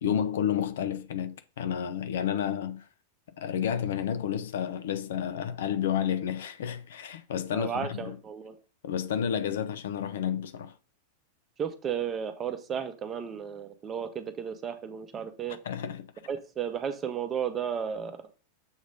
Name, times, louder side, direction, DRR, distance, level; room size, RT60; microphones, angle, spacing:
voice 1, 0.0-2.9 3.4-8.2 8.8-10.7 15.7-16.1, left 9 dB, 60° left, 0.5 m, -30 dB
voice 2, 7.5-8.6 11.6-15.6 16.3-18.3, right 7 dB, 25° right, 0.8 m, -34 dB
7.2 x 3.1 x 5.2 m
figure-of-eight pair, 90°, 0 cm